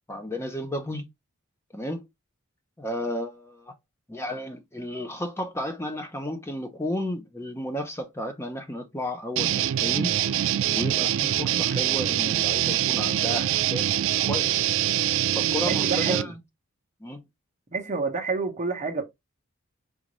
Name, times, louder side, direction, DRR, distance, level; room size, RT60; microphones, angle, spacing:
voice 1, 0.1-1.1 1.7-2.1 2.8-3.7 4.1-10.2 10.7-13.9 14.2-14.7 15.4-16.3 17.0-17.2, left 1 dB, 10° left, 0.7 m, -33 dB
sound 1, 9.4-16.2, right 12 dB, 60° right, 0.3 m, -24 dB
voice 2, 15.6-16.3 17.7-19.0, right 4 dB, 35° right, 0.9 m, -28 dB
5.1 x 2.5 x 3.0 m
head